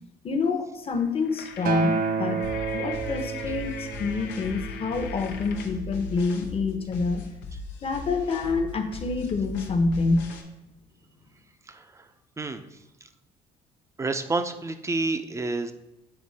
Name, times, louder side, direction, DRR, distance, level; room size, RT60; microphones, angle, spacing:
voice 1, 0.2-2.4 2.7-7.2 7.8-10.3, left 4 dB, 35° left, 6 dB, 1.0 m, -27 dB
sound 1, 1.0-5.8, left 7 dB, 75° left, 0.7 m, -42 dB
Acoustic guitar, 1.7-6.0 6.8-6.9, right 5 dB, 60° right, 0.7 m, -31 dB
sound 2, 2.4-10.4, left 3 dB, 90° left, 1.1 m, -38 dB
voice 2, 11.7-12.0 12.4-12.6 14.0-15.7, right 3 dB, 15° right, 8 dB, 0.6 m, -29 dB
7.9 x 4.2 x 4.2 m, 0.96 s
cardioid pair, 110°, 17 cm